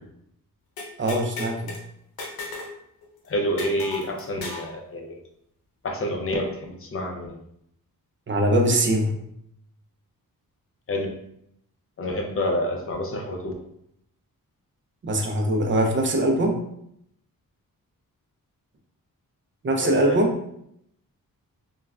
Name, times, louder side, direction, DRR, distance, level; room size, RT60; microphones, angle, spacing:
sound 1, 0.8-1.8 2.2-2.8 3.0-3.1 3.6-4.7, left 3 dB, 90° left, 0.7 m, -35 dB
voice 1, 1.0-1.7 8.3-9.1 15.0-16.6 19.6-20.3, right 1 dB, 35° right, 3 dB, 0.5 m, -22 dB
voice 2, 3.3-5.2 5.8-7.4 10.9-11.1 12.0-13.6 19.8-20.2, left 1 dB, 40° left, 2 dB, 0.6 m, -28 dB
3.1 x 2.3 x 2.3 m, 0.74 s
wide cardioid pair, 110°, 35 cm